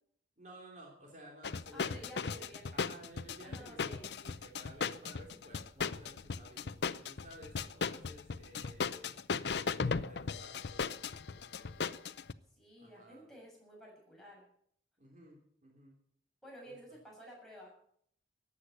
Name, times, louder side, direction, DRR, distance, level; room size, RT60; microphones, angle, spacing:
voice 1, 0.4-12.0 12.8-13.3 15.0-16.0 16.7-17.0, right 1 dB, 45° right, -1 dB, 3.3 m, -55 dB
sound 1, 1.4-12.3, left 5 dB, 70° left, 0.6 m, -37 dB
voice 2, 1.7-2.8 3.4-4.1 12.5-14.5 16.4-17.7, equal, ahead, -4 dB, 7.3 m, -52 dB
15.0 x 9.7 x 7.8 m, 0.67 s
head